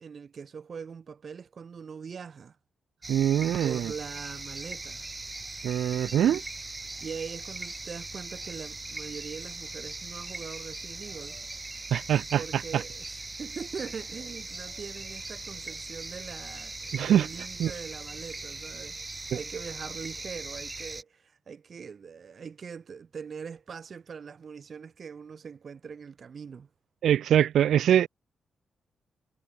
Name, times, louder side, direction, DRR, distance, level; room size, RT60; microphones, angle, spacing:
voice 1, 0.0-2.6 3.6-5.0 7.0-11.4 12.3-26.7, right 6 dB, 45° right, 3.8 m, -42 dB
sound 1, 3.0-21.0, right 2 dB, 20° right, 0.6 m, -40 dB
voice 2, 3.1-3.9 5.6-6.4 11.9-12.8 16.9-17.3 17.6-17.7 27.0-28.1, right 10 dB, 85° right, 0.4 m, -23 dB
cardioid pair, 120°, 0 cm